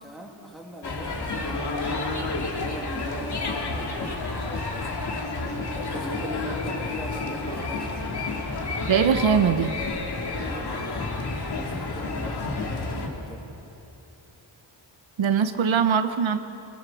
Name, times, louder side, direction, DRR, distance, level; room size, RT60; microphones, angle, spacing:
voice 1, 0.0-5.0 5.7-8.3 10.3-13.5, equal, ahead, -1 dB, 2.6 m, -41 dB
sound 1, 0.8-13.1, left 3 dB, 55° left, 2.7 m, -30 dB
voice 2, 8.9-9.7 15.2-16.4, right 7 dB, 70° right, 8 dB, 1.0 m, -21 dB
24.0 x 19.5 x 7.1 m, 2.8 s
wide cardioid pair, 175°, 47 cm